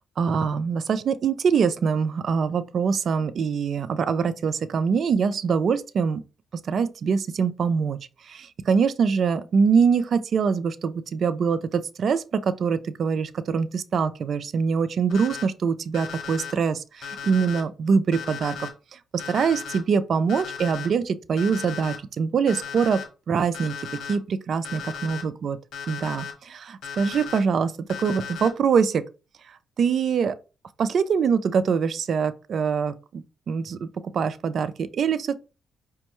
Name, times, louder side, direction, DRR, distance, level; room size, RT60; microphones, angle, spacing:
voice 1, 0.2-6.2 6.7-8.0 8.3-19.0 19.3-23.7 24.1-25.6 25.9-27.7 28.0-29.0 29.8-30.3 30.8-33.9 34.1-35.4, right 6 dB, 55° right, 0.4 m, -24 dB
Alarm, 15.1-15.4 15.9-16.5 17.0-17.6 18.1-18.7 19.2-19.8 20.3-20.9 21.4-22.0 22.5-23.0 23.5-24.1 24.6-25.2 25.7-26.3 26.8-27.4 27.9-28.5, left 7 dB, 70° left, 1.0 m, -36 dB
5.2 x 2.2 x 3.0 m
cardioid pair, 90°, 0 cm